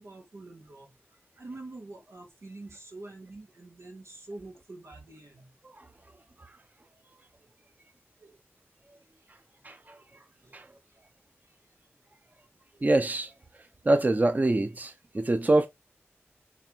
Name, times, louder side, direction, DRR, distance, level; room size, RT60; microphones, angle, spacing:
voice 1, 0.0-5.5 9.1-9.6 10.4-11.0 11.4-11.8 12.0-12.1, right 2 dB, 90° right, 2.1 m, -47 dB
voice 2, 9.6-10.0 10.5-10.7 12.8-13.3 13.8-15.7, right 2 dB, 35° right, 0.9 m, -25 dB
8.0 x 3.4 x 4.6 m
wide cardioid pair, 70°, 5 cm